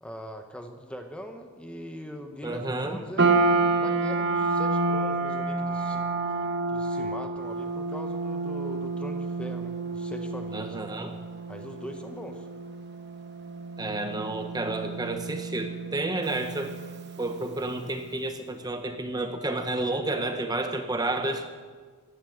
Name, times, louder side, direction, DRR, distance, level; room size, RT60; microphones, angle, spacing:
voice 1, 0.0-3.3 3.8-6.0 6.7-10.8 11.5-12.5, equal, 5° left, 5 dB, 1.0 m, -41 dB
voice 2, 2.4-3.0 10.5-11.1 13.8-16.7 17.2-21.5, right 2 dB, 20° right, 6 dB, 1.0 m, -30 dB
sound 1, 3.2-17.6, right 3 dB, 50° right, 1.1 m, -29 dB
16.0 x 11.5 x 7.9 m, 1.5 s
head